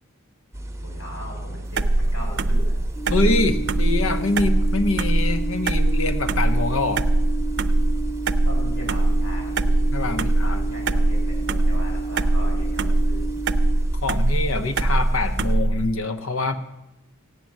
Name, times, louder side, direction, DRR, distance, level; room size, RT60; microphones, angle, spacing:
sound 1, 0.5-15.6, right 1 dB, 15° right, 1.0 m, -34 dB
voice 1, 0.8-2.8 8.4-13.3, equal, 85° left, -1 dB, 7.5 m, -39 dB
sound 2, 1.8-15.9, right 2 dB, 55° right, 0.6 m, -22 dB
sound 3, 2.9-13.8, right 4 dB, 10° left, 3.3 m, -32 dB
voice 2, 3.1-7.0 9.9-10.6 14.0-16.6, left 2 dB, 70° left, 8 dB, 1.0 m, -25 dB
16.0 x 9.2 x 7.3 m, 0.93 s
head